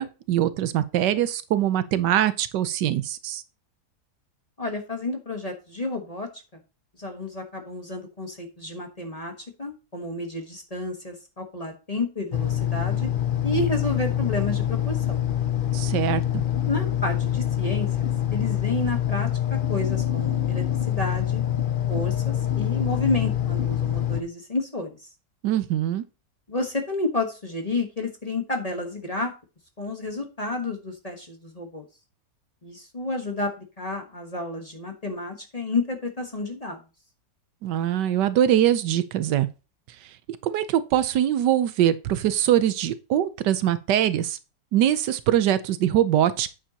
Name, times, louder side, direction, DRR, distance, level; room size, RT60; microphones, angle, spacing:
voice 1, 0.0-3.4 15.7-16.4 25.4-26.0 37.6-39.5 40.0-40.1 40.4-44.4 44.7-46.5, right 11 dB, 85° right, 1.3 m, -23 dB
voice 2, 4.6-6.6 7.0-9.3 9.6-13.1 13.4-15.2 16.7-21.4 21.9-25.1 26.5-29.3 29.8-31.8 32.6-36.8, left 2 dB, 25° left, 1.1 m, -30 dB
sound 1, 12.3-24.2, left 11 dB, 85° left, 0.4 m, -25 dB
8.8 x 7.0 x 2.8 m
omnidirectional pair, 1.8 m